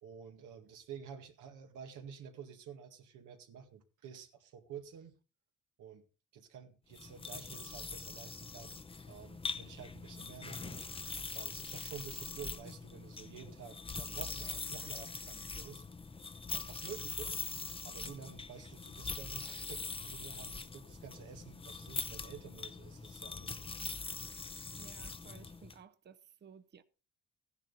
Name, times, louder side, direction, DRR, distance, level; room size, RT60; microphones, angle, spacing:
voice 1, 0.0-5.2 5.8-6.0 6.3-8.8 9.1-10.8 11.3-15.8 16.5-17.4 17.8-23.7, right 7 dB, 85° right, 2.0 m, -50 dB
sound 1, 6.9-25.8, left 4 dB, 20° left, 0.7 m, -43 dB
voice 2, 15.3-15.7 24.8-26.8, right 7 dB, 35° right, 0.8 m, -57 dB
14.0 x 10.5 x 4.1 m
cardioid pair, 90°, 30 cm